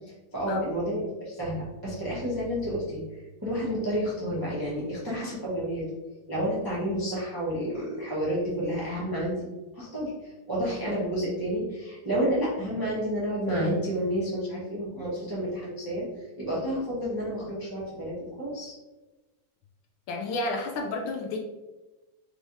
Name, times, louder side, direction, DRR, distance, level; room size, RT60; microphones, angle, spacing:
voice 1, 0.3-3.0 3.4-5.8 6.3-9.5 9.7-16.0 16.4-18.7, equal, 15° right, -8 dB, 0.8 m, -30 dB
voice 2, 20.1-21.4, left 2 dB, 75° left, 2 dB, 1.3 m, -31 dB
4.6 x 3.4 x 2.7 m, 1.1 s
omnidirectional pair, 2.4 m